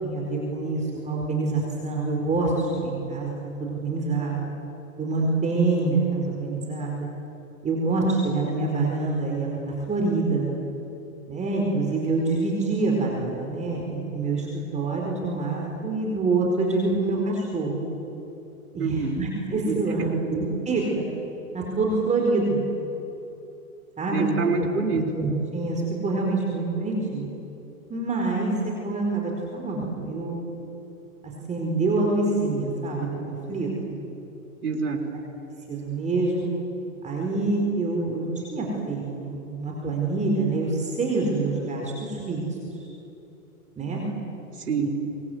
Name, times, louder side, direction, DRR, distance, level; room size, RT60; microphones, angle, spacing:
voice 1, 0.0-4.5 5.0-7.1 7.6-9.6 9.9-10.5 11.3-17.8 18.7-21.0 21.5-22.6 24.0-24.7 25.2-27.3 27.9-28.5 28.8-30.4 31.2-33.7 35.7-36.5 37.0-42.4 42.7-42.9 43.8-44.0, right 3 dB, 15° right, -1 dB, 4.7 m, -26 dB
voice 2, 18.8-19.2 19.7-20.2 24.1-25.0 34.6-35.1 44.7-44.9, right 4 dB, 85° right, 2 dB, 4.3 m, -26 dB
24.5 x 20.5 x 9.5 m, 3.0 s
hypercardioid pair, 130°, 44 cm